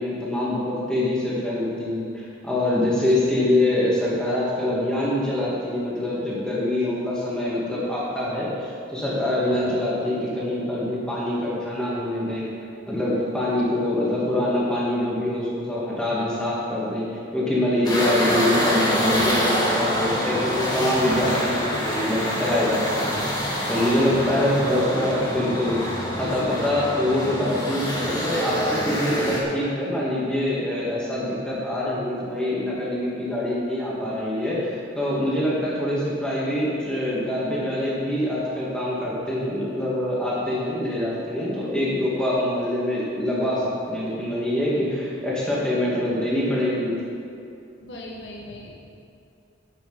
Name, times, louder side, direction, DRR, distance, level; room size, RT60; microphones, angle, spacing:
voice 1, 0.0-12.5 12.9-23.2 23.7-46.9, left 1 dB, 5° left, -7 dB, 2.7 m, -25 dB
sound 1, 17.8-29.4, equal, 20° left, 1.7 m, -26 dB
voice 2, 47.8-48.8, left 1 dB, 70° left, -2 dB, 1.6 m, -40 dB
11.0 x 8.8 x 5.3 m, 2.6 s
head